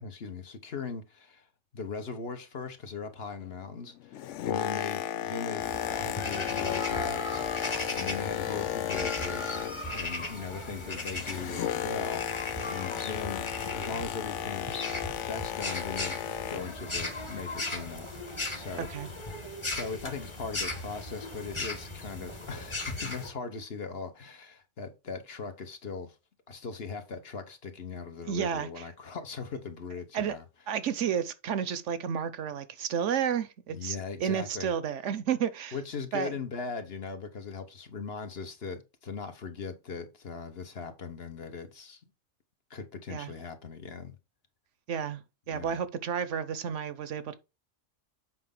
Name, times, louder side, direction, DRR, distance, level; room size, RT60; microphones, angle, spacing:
voice 1, 0.0-1.5 1.7-5.7 6.0-7.5 7.9-12.2 12.6-13.5 13.7-14.9 15.2-18.9 19.7-26.2 26.5-30.4 33.7-34.7 35.7-42.0 42.7-44.2 45.5-45.8, left 5 dB, 55° left, 1.3 m, -39 dB
Boat Water vehicle, 4.0-10.1 10.4-16.8 17.5-17.6, left 11 dB, 75° left, 0.9 m, -34 dB
sound 1, 5.6-23.3, left 2 dB, 25° left, 1.2 m, -37 dB
voice 2, 18.8-19.1 28.2-28.8 30.1-30.4 30.7-35.7 36.1-36.3 43.1-43.3 44.9-45.2 45.5-47.3, right 8 dB, 75° right, 1.1 m, -31 dB
7.7 x 5.2 x 3.8 m
omnidirectional pair, 1.3 m